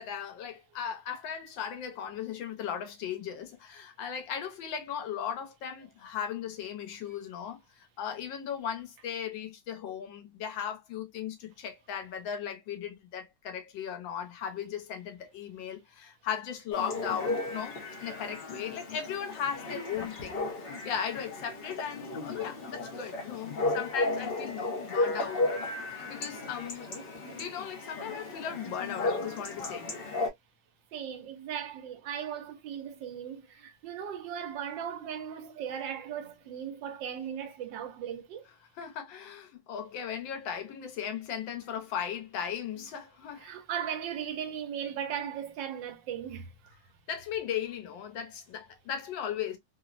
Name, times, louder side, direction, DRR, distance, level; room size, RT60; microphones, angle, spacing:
voice 1, 0.0-20.4 20.8-25.5 26.0-26.9 27.3-30.0 38.8-43.5 47.1-49.6, left 8 dB, 85° left, 1.5 m, -37 dB
Chatter / Bark / Livestock farm animals working animals, 16.7-30.3, left 2 dB, 50° left, 0.7 m, -34 dB
voice 2, 30.9-38.5 43.4-46.8, right 9 dB, 80° right, 1.4 m, -37 dB
3.6 x 2.0 x 2.4 m
omnidirectional pair, 2.0 m